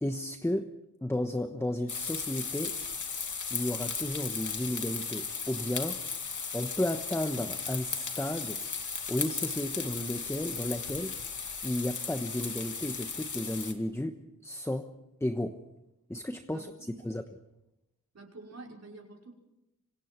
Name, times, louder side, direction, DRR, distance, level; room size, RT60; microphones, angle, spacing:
voice 1, 0.0-0.7 1.0-2.8 3.5-6.0 6.5-8.6 9.1-11.2 11.6-14.9 15.2-15.6 16.1-17.2, left 1 dB, 10° left, 7 dB, 1.2 m, -33 dB
sound 1, 1.9-13.7, left 5 dB, 75° left, 2.6 m, -36 dB
voice 2, 16.5-17.1 18.1-19.3, right 3 dB, 60° right, -1 dB, 5.5 m, -48 dB
27.0 x 25.0 x 4.6 m, 0.90 s
wide cardioid pair, 110°, 30 cm